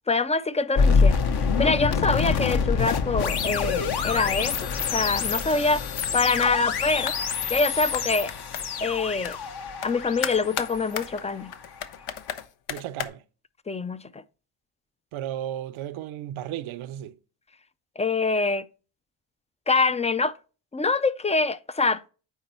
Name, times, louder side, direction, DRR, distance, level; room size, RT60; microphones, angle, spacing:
voice 1, 0.1-1.2 1.6-7.2 7.5-8.3 8.8-9.4 9.8-11.5 13.7-14.2 18.0-18.7 19.7-20.4 20.7-22.0, left 3 dB, 15° left, 0.3 m, -25 dB
sound 1, 0.8-11.8, left 5 dB, 50° left, 0.9 m, -26 dB
sound 2, 5.5-5.7 6.0-6.2 6.4-7.5 7.9-8.9 9.2-9.4 9.8-9.9 10.2-13.1, left 10 dB, 85° left, 0.8 m, -34 dB
voice 2, 12.7-13.2 15.1-17.2, right 11 dB, 75° right, 0.7 m, -34 dB
9.2 x 3.4 x 4.3 m
cardioid pair, 65°, 49 cm